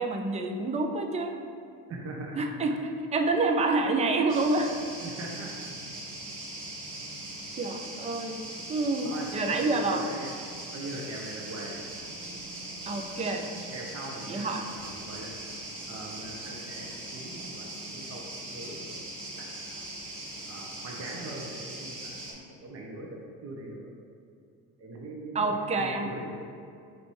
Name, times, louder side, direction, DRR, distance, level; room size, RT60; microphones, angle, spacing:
voice 1, 0.0-1.4 2.3-4.7 7.6-8.4 8.7-10.0 12.9-13.5 14.3-14.7 25.3-26.1, right 3 dB, 15° right, 4 dB, 0.3 m, -28 dB
voice 2, 1.9-2.5 3.5-3.6 5.0-5.5 9.0-9.3 9.5-10.3 10.7-11.7 13.7-15.3 15.9-19.0 19.4-19.8 20.5-23.9 24.8-26.3, right 2 dB, 35° right, -1 dB, 0.7 m, -41 dB
sound 1, 4.3-22.3, right 1 dB, 90° right, 1.1 m, -40 dB
4.4 x 2.6 x 4.6 m, 2.4 s
hypercardioid pair, 65°, 46 cm